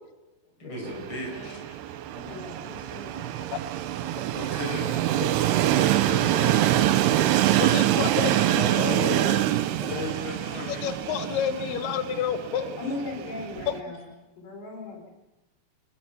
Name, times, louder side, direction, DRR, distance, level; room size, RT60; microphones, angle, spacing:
voice 1, 0.6-1.6 4.3-6.9 8.6-10.8, left 2 dB, 25° left, -1 dB, 6.9 m, -35 dB
Train, 0.8-13.8, right 13 dB, 75° right, 2.8 m, -25 dB
voice 2, 1.3-1.8 2.1-3.3 12.8-14.0 14.4-15.1, left 3 dB, 60° left, 2 dB, 6.0 m, -38 dB
voice 3, 7.5-9.2 10.5-12.9 13.7-13.9, left 9 dB, 75° left, 8 dB, 2.0 m, -31 dB
28.5 x 21.0 x 5.9 m, 1.1 s
omnidirectional pair, 5.2 m